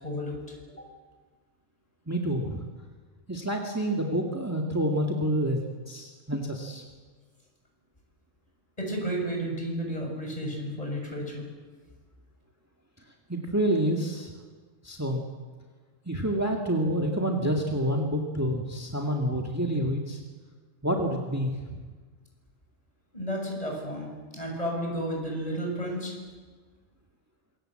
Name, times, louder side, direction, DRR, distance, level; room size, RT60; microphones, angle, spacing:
voice 1, 0.0-0.4 0.7-0.9 8.8-11.5 23.1-26.1, equal, 30° left, 0 dB, 7.0 m, -32 dB
voice 2, 2.1-2.6 3.3-5.6 5.9-6.8 13.3-14.3 14.8-15.2 16.1-20.2 20.8-21.5, right 1 dB, 15° right, 0 dB, 2.1 m, -28 dB
26.5 x 22.5 x 7.8 m, 1.4 s
omnidirectional pair, 1.2 m